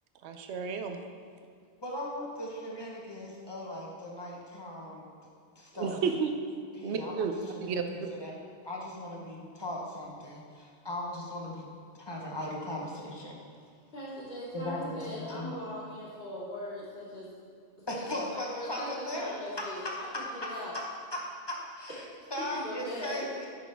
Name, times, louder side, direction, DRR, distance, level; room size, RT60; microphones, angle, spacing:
voice 1, 0.2-1.0 5.7-6.5 6.8-7.3 7.6-7.8, right 6 dB, 80° right, 6 dB, 0.9 m, -31 dB
voice 2, 1.8-5.0 5.6-6.0 6.7-7.3 7.5-8.3 8.6-11.7 11.9-13.4 14.5-15.5 17.9-19.2 19.8-20.2 21.1-22.0 22.3-23.5, left 1 dB, 25° left, -2 dB, 1.1 m, -38 dB
voice 3, 13.9-17.3 18.0-20.7 22.4-23.3, left 1 dB, 60° left, -9 dB, 2.6 m, -40 dB
9.5 x 6.2 x 3.4 m, 2.2 s
omnidirectional pair, 1.1 m